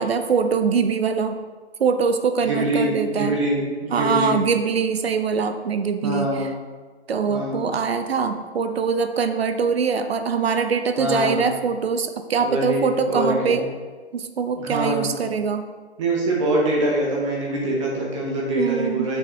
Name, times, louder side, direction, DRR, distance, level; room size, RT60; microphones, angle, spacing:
voice 1, 0.0-1.4 1.8-3.4 3.9-6.5 7.1-13.6 14.1-15.7 18.5-19.1, right 5 dB, 65° right, 9 dB, 0.6 m, -23 dB
voice 2, 2.4-4.4 6.0-6.5 7.3-7.6 11.0-11.5 12.4-13.6 14.6-15.1 16.0-19.2, right 1 dB, 30° right, -3 dB, 1.1 m, -24 dB
6.3 x 5.9 x 3.2 m, 1.4 s
hypercardioid pair, 150°, 33 cm